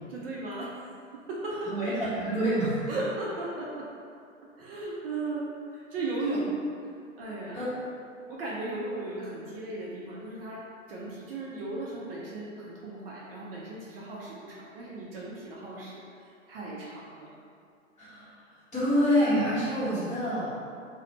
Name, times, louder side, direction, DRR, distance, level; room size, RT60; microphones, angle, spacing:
voice 1, 0.1-0.9 1.1-1.8 2.9-3.9 4.6-6.4 7.2-7.6 8.3-17.3, right 2 dB, 45° right, -5 dB, 0.4 m, -36 dB
voice 2, 1.7-2.8 6.3-6.4 7.5-7.7 18.0-18.3 18.7-20.5, equal, 15° left, -11 dB, 0.9 m, -26 dB
2.4 x 2.0 x 3.1 m, 2.4 s
figure-of-eight pair, 110°, 40 cm